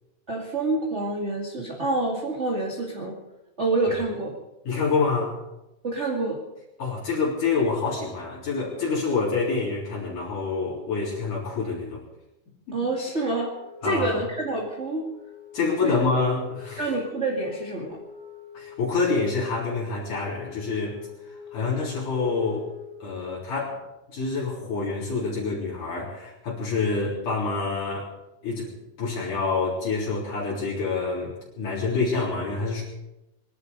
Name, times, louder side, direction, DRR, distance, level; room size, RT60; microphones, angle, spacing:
voice 1, 0.3-3.2 3.6-4.4 5.8-6.4 12.7-13.5 13.8-15.0 15.8-15.9 16.8-18.0, right 2 dB, 25° right, -1 dB, 2.0 m, -27 dB
voice 2, 4.7-5.4 6.8-12.0 12.7-12.8 13.8-14.2 15.5-16.9 18.5-21.0 21.3-22.7 23.0-23.8 24.1-28.1 28.4-28.7 29.0-32.8, left 4 dB, 65° left, -7 dB, 5.3 m, -27 dB
Wind instrument woodwind instrument, 13.4-23.1, left 5 dB, 75° right, 5.1 m, -44 dB
24.0 x 11.5 x 5.3 m, 0.96 s
omnidirectional pair, 3.9 m